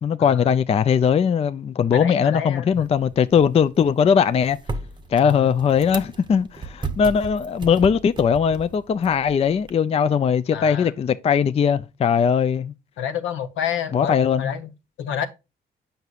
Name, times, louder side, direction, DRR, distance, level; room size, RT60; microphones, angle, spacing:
voice 1, 0.0-4.6 5.1-12.7 13.9-14.5, left 7 dB, 30° left, 0.4 m, -20 dB
voice 2, 1.9-2.8 5.2-5.5 10.5-10.9 13.0-14.7 15.0-15.3, left 9 dB, 80° left, 0.9 m, -29 dB
sound 1, 2.7-9.7, right 3 dB, 25° right, 0.7 m, -36 dB
7.8 x 5.6 x 2.4 m
cardioid pair, 90°, 20 cm